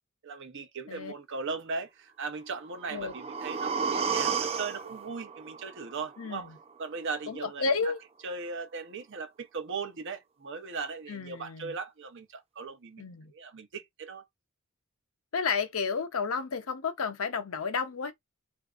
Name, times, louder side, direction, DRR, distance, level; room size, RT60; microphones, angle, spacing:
voice 1, 0.2-6.5 6.8-7.9 8.2-14.2, right 4 dB, 60° right, 0.7 m, -38 dB
sound 1, 2.6-6.6 7.0-7.1, right 6 dB, 30° right, 0.4 m, -33 dB
voice 2, 6.2-6.5 7.3-8.0 11.1-11.7 13.0-13.3 15.3-18.1, left 5 dB, 70° left, 0.7 m, -31 dB
3.4 x 2.6 x 2.4 m
head